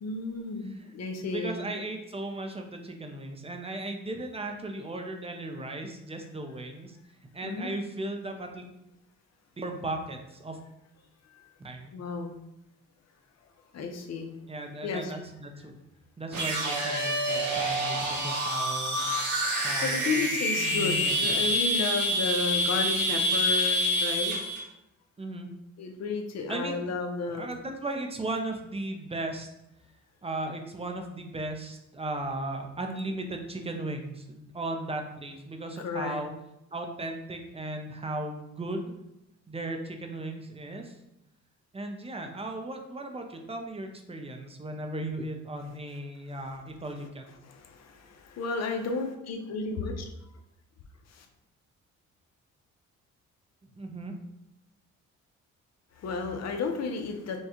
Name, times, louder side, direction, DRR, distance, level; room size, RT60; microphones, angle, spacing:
voice 1, 0.0-1.7 7.4-7.7 11.3-11.5 11.9-12.3 13.7-14.3 14.8-15.2 19.8-24.3 25.8-27.5 35.8-36.2 46.4-46.5 47.4-50.0 51.1-51.3 55.9-57.4, left 4 dB, 60° left, 4 dB, 0.8 m, -33 dB
voice 2, 1.2-7.0 7.3-8.6 9.6-10.6 11.6-11.9 14.5-15.7 16.2-19.0 19.6-21.5 25.2-25.5 26.5-27.0 27.3-29.5 30.2-36.3 36.7-38.9 39.5-40.9 41.7-47.3 53.8-54.1, right 2 dB, 20° right, 4 dB, 0.6 m, -36 dB
sound 1, 16.3-24.6, equal, 75° right, 1.5 m, -27 dB
5.5 x 2.3 x 3.0 m, 0.86 s
cardioid pair, 90°, 30 cm